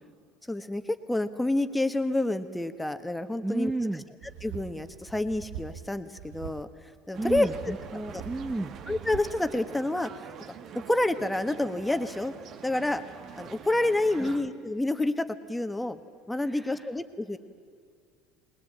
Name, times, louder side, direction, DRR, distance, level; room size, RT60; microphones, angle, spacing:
voice 1, 0.5-3.7 4.4-6.7 7.1-7.5 8.1-8.2 8.9-10.3 10.9-12.3 12.6-13.0 13.4-16.0 16.3-17.4, left 2 dB, 10° left, 9 dB, 1.4 m, -28 dB
voice 2, 3.4-4.0 7.2-8.7 14.2-14.4 16.5-16.9, right 2 dB, 10° right, 6 dB, 1.0 m, -32 dB
sound 1, 4.2-5.9 6.2-6.6 7.1-9.4, right 9 dB, 80° right, 1.2 m, -43 dB
sound 2, 7.1-14.4, right 8 dB, 50° right, 1.2 m, -45 dB
20.5 x 20.0 x 8.7 m, 2.3 s
supercardioid pair, 95°, 0 cm